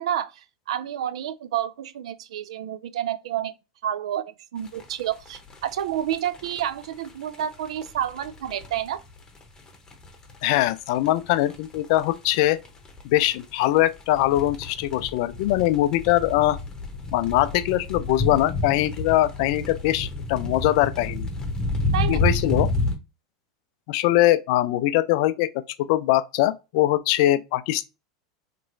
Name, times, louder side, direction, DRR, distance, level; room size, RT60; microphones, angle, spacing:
voice 1, 0.0-3.5 3.8-9.0 21.9-22.2, right 10 dB, 75° right, 0.3 m, -29 dB
sound 1, 4.6-23.0, left 2 dB, 20° left, 0.9 m, -30 dB
voice 2, 10.4-12.6 13.0-16.6 17.1-21.3 22.1-22.7 23.9-27.8, left 15 dB, 60° left, 0.3 m, -22 dB
3.0 x 2.9 x 2.6 m
hypercardioid pair, 95°, 3 cm